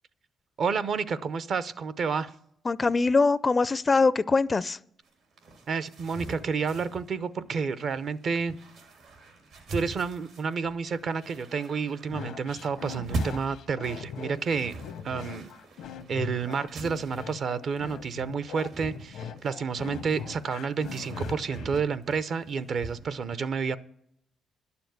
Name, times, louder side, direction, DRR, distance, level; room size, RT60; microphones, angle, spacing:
voice 1, 0.6-2.3 5.7-8.6 9.7-14.7 15.0-15.5 16.1-23.8, right 5 dB, 55° right, 16 dB, 0.7 m, -30 dB
voice 2, 2.7-4.8, left 4 dB, 30° left, 19 dB, 0.4 m, -23 dB
sound 1, 5.0-23.1, right 2 dB, 80° right, 3.1 m, -42 dB
sound 2, 12.1-21.8, left 7 dB, 80° left, 0.8 m, -40 dB
11.5 x 7.0 x 7.9 m, 0.73 s
cardioid pair, 90°, 0 cm